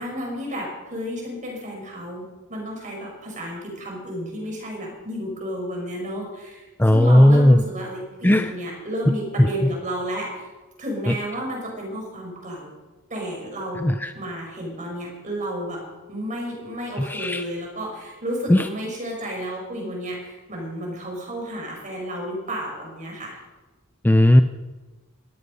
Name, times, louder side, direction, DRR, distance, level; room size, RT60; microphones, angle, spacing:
voice 1, 0.0-2.2 2.5-10.5 10.8-12.7 13.1-15.8 16.1-23.4, equal, 35° right, -1 dB, 6.0 m, -32 dB
voice 2, 6.8-7.6 8.2-8.5 9.1-9.2 9.4-9.5 11.1-11.2 13.8-14.1 17.0-17.4 18.5-18.7 24.0-24.4, left 1 dB, 10° left, 8 dB, 0.5 m, -15 dB
18.5 x 13.5 x 5.5 m, 1.2 s
head